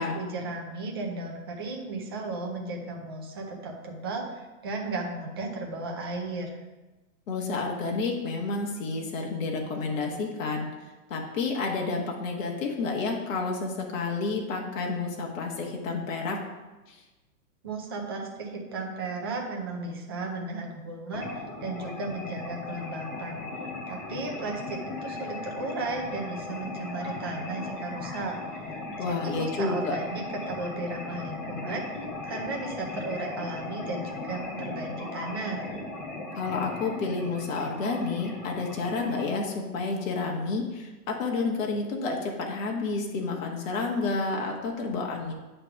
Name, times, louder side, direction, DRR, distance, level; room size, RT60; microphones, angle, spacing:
voice 1, 0.0-6.5 17.6-23.4 23.9-28.7 29.0-31.8 32.2-35.7, right 3 dB, 20° right, 0 dB, 0.4 m, -35 dB
voice 2, 7.3-10.7 11.1-16.4 16.9-17.0 29.0-30.0 36.3-45.3, left 3 dB, 55° left, 0 dB, 1.5 m, -30 dB
sound 1, 21.1-39.2, left 2 dB, 30° left, 1.5 m, -37 dB
8.6 x 3.4 x 5.8 m, 1.1 s
hypercardioid pair, 155°, 45 cm